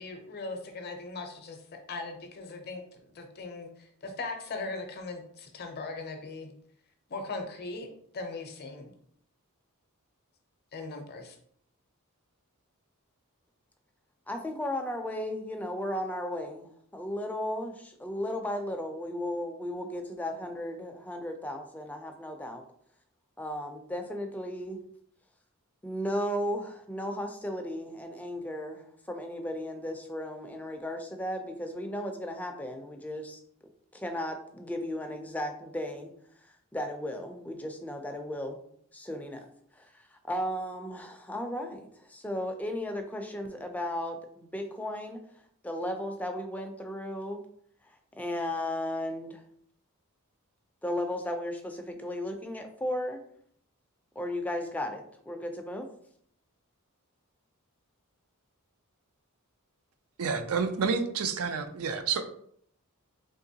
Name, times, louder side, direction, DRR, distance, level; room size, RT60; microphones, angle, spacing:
voice 1, 0.0-1.6 1.9-6.5 7.1-7.9 8.1-8.9 10.7-11.4, left 3 dB, 45° left, 4 dB, 0.6 m, -39 dB
voice 2, 14.3-22.6 23.4-24.8 25.8-33.4 33.9-36.1 36.5-38.6 38.9-39.5 39.7-45.2 45.6-47.4 47.8-49.4 50.8-53.2 54.2-55.9, left 1 dB, 5° left, 4 dB, 0.4 m, -35 dB
voice 3, 60.2-62.2, right 5 dB, 75° right, 8 dB, 0.4 m, -29 dB
3.6 x 2.9 x 2.7 m, 0.64 s
head